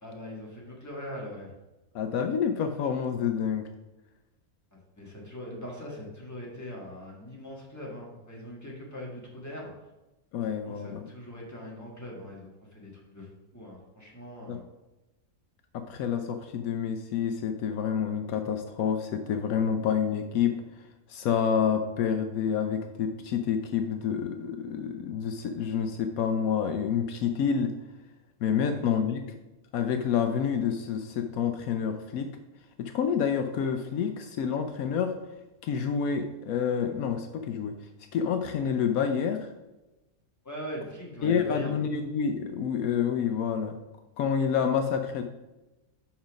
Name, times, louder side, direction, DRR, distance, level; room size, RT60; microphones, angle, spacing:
voice 1, 0.0-1.6 4.7-9.7 10.6-14.6 28.7-28.8 40.4-41.8, equal, 10° left, -3 dB, 1.5 m, -41 dB
voice 2, 1.9-3.6 10.3-11.1 14.5-14.6 15.7-20.6 21.1-27.7 28.4-29.3 29.7-32.3 32.8-35.1 35.6-37.7 38.1-39.5 41.2-43.8 44.2-45.2, left 7 dB, 75° left, 7 dB, 1.0 m, -28 dB
5.9 x 5.6 x 5.1 m, 1.0 s
omnidirectional pair, 1.5 m